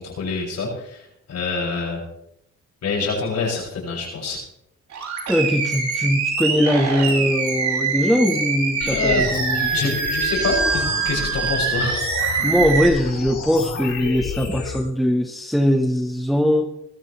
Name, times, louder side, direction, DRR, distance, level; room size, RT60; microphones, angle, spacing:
voice 1, 0.0-2.0 2.8-4.4 8.9-9.4 9.7-12.4, left 3 dB, 60° left, -2 dB, 7.5 m, -26 dB
Animal, 4.9-12.9, right 5 dB, 65° right, 5.3 m, -24 dB
voice 2, 5.3-10.0 12.4-16.7, equal, ahead, 4 dB, 1.4 m, -21 dB
sound 1, 8.8-14.8, left 6 dB, 75° left, 6.6 m, -30 dB
20.0 x 13.5 x 3.4 m, 0.78 s
cardioid pair, 90°, 30 cm